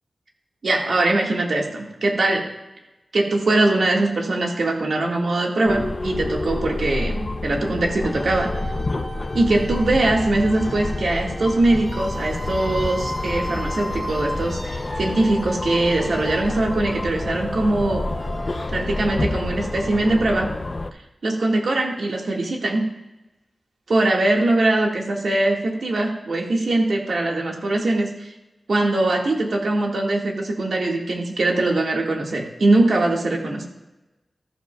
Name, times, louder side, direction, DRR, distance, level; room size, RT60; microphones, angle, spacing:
voice 1, 0.6-2.5 3.1-8.5 9.3-18.1 18.7-20.5 21.2-22.9 23.9-28.3 28.7-33.6, right 2 dB, 70° right, 0 dB, 1.7 m, -21 dB
sound 1, 5.7-20.9, left 2 dB, 35° left, 0.5 m, -29 dB
sound 2, 8.0-20.9, equal, 5° right, 1.7 m, -36 dB
13.5 x 12.0 x 2.3 m, 0.99 s
wide cardioid pair, 115°, 0 cm